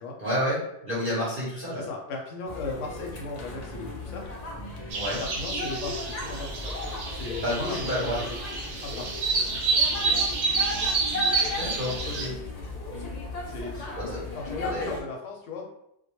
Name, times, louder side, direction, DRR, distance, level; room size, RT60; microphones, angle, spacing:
voice 1, 0.2-1.9 4.9-5.2 7.3-8.2 11.6-12.3 13.7-14.2 14.6-14.9, equal, 50° right, -7 dB, 0.8 m, -30 dB
voice 2, 1.7-4.2 5.2-6.8 7.1-8.4 8.8-9.1 13.5-13.9 14.3-15.7, left 3 dB, 80° left, 1 dB, 0.9 m, -37 dB
sound 1, 2.5-15.0, left 2 dB, 60° left, 0.4 m, -36 dB
sound 2, 4.9-12.3, right 4 dB, 70° right, 0.9 m, -29 dB
2.2 x 2.1 x 2.9 m, 0.79 s
omnidirectional pair, 1.3 m